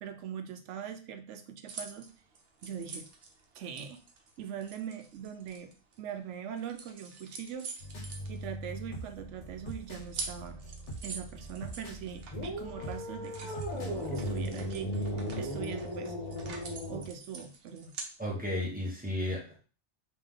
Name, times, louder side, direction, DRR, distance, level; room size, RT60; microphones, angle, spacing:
voice 1, 0.0-2.1 2.6-3.1 3.5-4.0 4.4-5.7 6.0-7.7 8.3-10.6 11.0-15.1 15.4-16.1 16.9-17.9, right 8 dB, 85° right, 7 dB, 1.0 m, -41 dB
sound 1, 1.7-6.2 6.6-9.0 9.4-9.5 9.7-18.2, right 4 dB, 60° right, 0.9 m, -46 dB
sound 2, 7.8-14.5, right 1 dB, 75° left, 1.4 m, -43 dB
sound 3, 12.3-17.1, equal, 40° left, 1.0 m, -36 dB
voice 2, 18.2-19.6, left 1 dB, 10° right, -2 dB, 1.0 m, -33 dB
3.3 x 3.1 x 3.6 m, 0.37 s
omnidirectional pair, 1.2 m